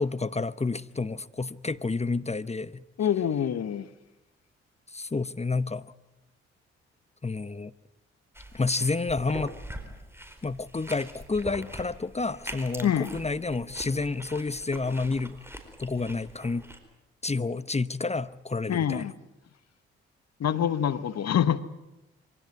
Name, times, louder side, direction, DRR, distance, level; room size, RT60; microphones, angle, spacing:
voice 1, 0.0-2.8 4.9-5.8 7.2-7.7 8.5-9.5 10.4-15.4 15.8-16.7 17.2-19.0, left 3 dB, 20° left, 15 dB, 0.9 m, -29 dB
voice 2, 3.0-3.9 12.8-13.1 18.7-19.1 20.4-21.6, left 9 dB, 55° left, 13 dB, 1.2 m, -25 dB
sound 1, 8.3-16.8, right 1 dB, 10° right, 4.6 m, -43 dB
24.5 x 16.5 x 9.5 m, 0.95 s
hypercardioid pair, 40°, 31 cm